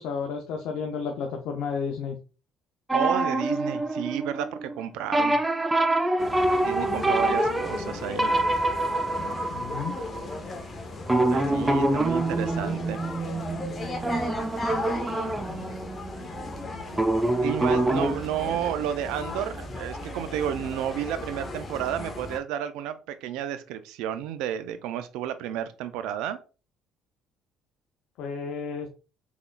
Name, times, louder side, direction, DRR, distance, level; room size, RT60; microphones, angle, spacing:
voice 1, 0.0-2.2 7.2-7.5 9.5-9.9 11.6-11.9 28.2-28.9, left 5 dB, 70° left, 3 dB, 0.5 m, -32 dB
sound 1, 2.9-4.8 5.1-10.3 11.1-16.5 16.9-18.1, right 2 dB, 15° right, 0.5 m, -26 dB
voice 2, 2.9-5.4 6.6-8.4 11.3-13.0 17.4-26.4, right 10 dB, 75° right, 11 dB, 0.4 m, -31 dB
sound 2, 6.2-22.4, left 2 dB, 35° left, 0.9 m, -36 dB
3.5 x 3.5 x 2.2 m, 0.34 s
hypercardioid pair, 60°, 0 cm